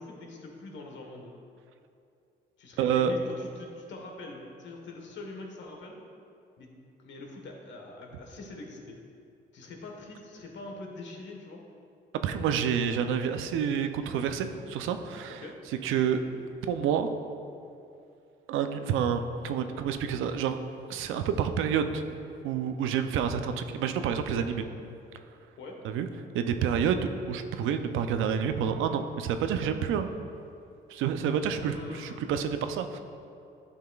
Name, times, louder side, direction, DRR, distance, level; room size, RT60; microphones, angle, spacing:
voice 1, 0.0-1.3 2.6-6.0 6.6-6.7 7.0-9.0 9.5-11.6 15.4-15.6 25.6-25.8 31.5-32.3, left 2 dB, 70° left, 1 dB, 1.2 m, -44 dB
voice 2, 2.8-3.1 12.2-15.4 15.8-16.2 16.7-17.1 18.5-20.6 20.9-22.0 22.4-24.7 25.8-26.1 26.3-30.1 30.9-33.0, right 7 dB, 85° right, 8 dB, 0.5 m, -28 dB
10.5 x 5.6 x 2.3 m, 2.5 s
cardioid pair, 90°, 20 cm